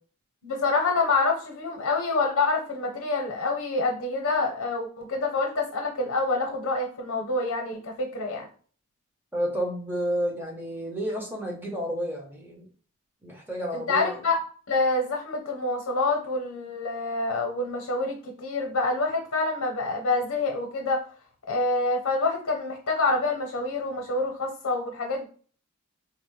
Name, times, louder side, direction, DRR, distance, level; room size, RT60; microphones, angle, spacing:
voice 1, 0.4-8.5 13.7-14.3 14.7-21.1 21.5-25.3, left 3 dB, 80° left, 1 dB, 0.7 m, -27 dB
voice 2, 9.3-12.7 13.2-14.2, equal, 10° right, -2 dB, 0.7 m, -31 dB
3.7 x 2.0 x 3.0 m, 0.42 s
head